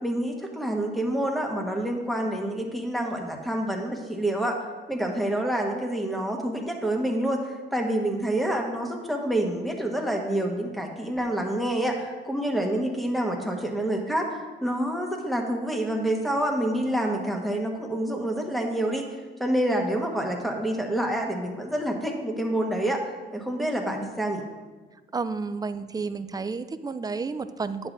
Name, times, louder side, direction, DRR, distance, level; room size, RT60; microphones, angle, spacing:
voice 1, 0.0-4.6 4.9-19.1 19.4-23.0 23.3-24.4, right 1 dB, ahead, 1 dB, 1.4 m, -27 dB
voice 2, 25.1-27.9, right 4 dB, 20° right, 11 dB, 0.4 m, -31 dB
10.5 x 8.0 x 2.7 m, 1.3 s
cardioid pair, 90°, 20 cm